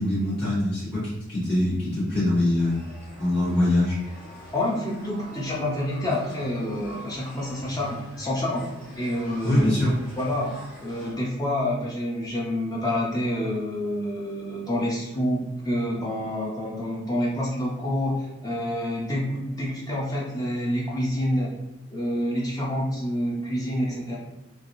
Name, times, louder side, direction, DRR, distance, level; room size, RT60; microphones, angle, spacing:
voice 1, 0.0-2.8 3.2-4.0 9.4-10.0, left 1 dB, 65° left, -10 dB, 1.4 m, -23 dB
sound 1, 2.6-11.1, equal, 45° left, 1.3 m, -44 dB
voice 2, 4.5-8.7 9.0-9.7 10.2-10.5 10.8-21.5 21.9-24.2, left 1 dB, 20° left, -4 dB, 0.6 m, -28 dB
3.2 x 2.5 x 2.6 m, 0.96 s
head